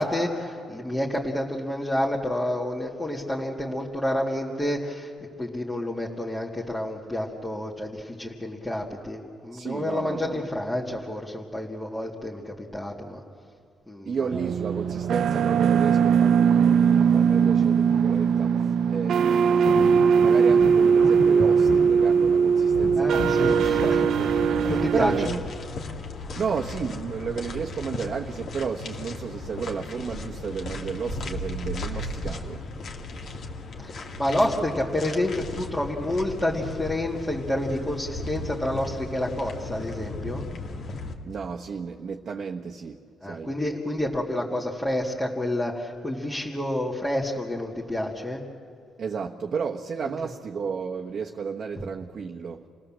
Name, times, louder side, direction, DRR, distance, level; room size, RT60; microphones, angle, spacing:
voice 1, 0.0-5.1 5.4-13.2 13.9-14.3 23.0-24.4 24.7-25.4 33.8-40.4 43.2-48.4, left 1 dB, 10° left, -5 dB, 2.3 m, -29 dB
voice 2, 9.5-10.5 14.0-23.1 24.9-25.4 26.3-32.7 34.6-34.7 41.2-43.5 49.0-52.6, right 6 dB, 50° right, 0 dB, 1.2 m, -32 dB
sound 1, 14.3-25.3, right 6 dB, 70° right, 0.7 m, -20 dB
sound 2, 19.6-25.8 26.2-26.9 28.1-28.6 28.8-28.9 29.2-29.5 30.3-31.2 31.7-31.8, left 2 dB, 80° left, 2.1 m, -34 dB
sound 3, 23.5-41.1, left 2 dB, 60° left, 2.4 m, -36 dB
29.0 x 18.0 x 7.5 m, 2.2 s
cardioid pair, 90°, 0 cm